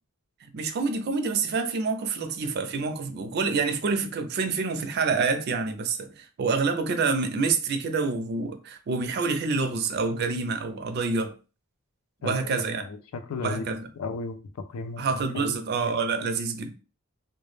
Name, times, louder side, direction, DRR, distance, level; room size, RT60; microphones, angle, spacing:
voice 1, 0.4-11.3 12.2-12.8 13.4-13.9 15.0-16.7, right 4 dB, 50° right, 0.4 m, -27 dB
voice 2, 12.2-13.7 14.0-15.0 15.3-15.6, left 3 dB, 80° left, 0.4 m, -35 dB
2.1 x 2.0 x 3.1 m
head